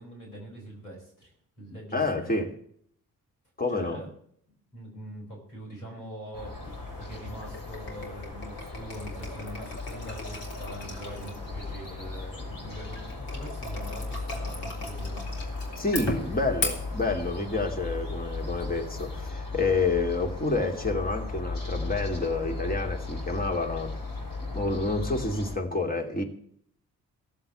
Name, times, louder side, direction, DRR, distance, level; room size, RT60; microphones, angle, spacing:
voice 1, 0.0-2.4 3.7-4.1 4.7-15.5, right 1 dB, 85° left, 4.4 m, -43 dB
voice 2, 1.9-2.5 3.6-4.0 15.8-24.0 24.5-26.2, left 3 dB, 20° left, 2.8 m, -28 dB
sound 1, 6.3-25.6, left 3 dB, 45° left, 4.2 m, -36 dB
sound 2, 6.6-19.3, left 2 dB, 65° left, 3.5 m, -40 dB
16.0 x 7.5 x 8.5 m
figure-of-eight pair, 40°, 45 cm